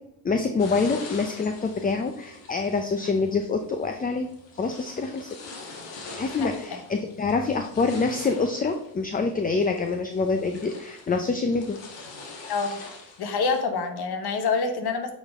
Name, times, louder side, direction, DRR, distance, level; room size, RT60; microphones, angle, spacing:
voice 1, 0.2-4.3 4.5-5.4 6.1-11.8, left 4 dB, 20° left, 6 dB, 0.5 m, -26 dB
sound 1, 0.6-13.6, left 3 dB, 80° left, 1.7 m, -44 dB
voice 2, 6.4-6.8 12.5-12.8 13.2-15.1, left 4 dB, 60° left, 7 dB, 1.2 m, -27 dB
8.3 x 4.2 x 3.6 m, 0.81 s
cardioid pair, 90°, 43 cm